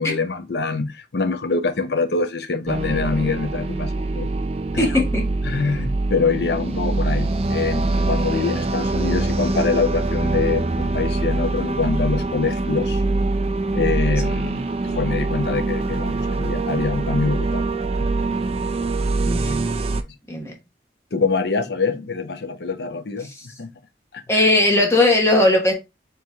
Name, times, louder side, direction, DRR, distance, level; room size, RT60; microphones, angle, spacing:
voice 1, 0.0-4.3 4.7-5.0 5.4-13.0 13.7-17.6 21.1-23.3 23.6-23.7 24.1-24.2, left 4 dB, 60° left, 0.6 m, -24 dB
sound 1, 2.7-20.0, right 2 dB, 35° right, 0.4 m, -24 dB
voice 2, 4.8-5.2 8.3-8.6 19.2-19.7 20.3-20.5 23.2-23.5 24.3-25.7, left 2 dB, 15° left, 1.0 m, -19 dB
4.6 x 2.9 x 3.4 m
head